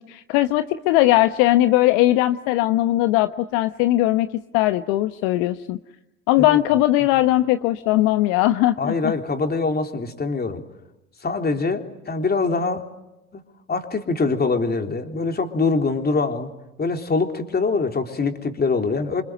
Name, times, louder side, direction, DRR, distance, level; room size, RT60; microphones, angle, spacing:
voice 1, 0.1-4.3 4.5-5.8 6.3-9.1, left 16 dB, 60° left, 10 dB, 1.2 m, -19 dB
voice 2, 8.8-10.6 11.2-12.9 13.3-13.4 13.7-16.5 16.8-19.2, left 4 dB, 25° left, 5 dB, 3.6 m, -23 dB
26.5 x 26.5 x 8.0 m, 0.94 s
hypercardioid pair, 75°, 41 cm